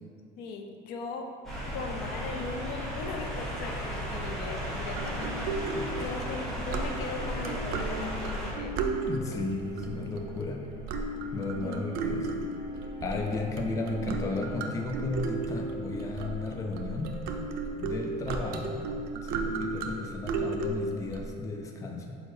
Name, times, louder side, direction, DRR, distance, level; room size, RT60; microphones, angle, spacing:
voice 1, 0.4-1.3 1.7-5.5 6.0-8.7 11.6-11.9, left 3 dB, 75° left, 4 dB, 0.6 m, -38 dB
sound 1, 1.3-17.6, left 3 dB, 20° right, 1.4 m, -52 dB
sound 2, 1.4-8.5, equal, ahead, 1.1 m, -35 dB
sound 3, 4.9-21.3, right 3 dB, 80° right, 0.5 m, -35 dB
voice 2, 5.7-6.1 9.0-10.6 11.3-12.3 13.0-17.1 17.8-18.8 19.2-22.2, left 3 dB, 20° left, 2 dB, 0.5 m, -34 dB
4.6 x 4.4 x 4.8 m, 2.5 s
cardioid pair, 160°, 16 cm